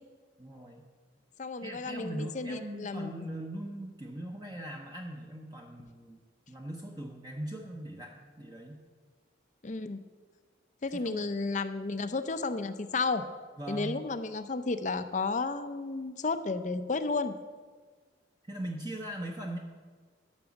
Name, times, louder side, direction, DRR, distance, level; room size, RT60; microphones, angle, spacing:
voice 1, 0.4-0.8 1.6-6.2 6.5-8.8 10.9-11.2 13.6-14.1 18.4-19.6, right 1 dB, 20° right, 0 dB, 0.8 m, -40 dB
voice 2, 1.4-3.3 9.6-10.0 10.8-13.2 13.7-17.3, left 3 dB, 40° left, 10 dB, 0.5 m, -32 dB
11.5 x 6.1 x 7.1 m, 1.5 s
head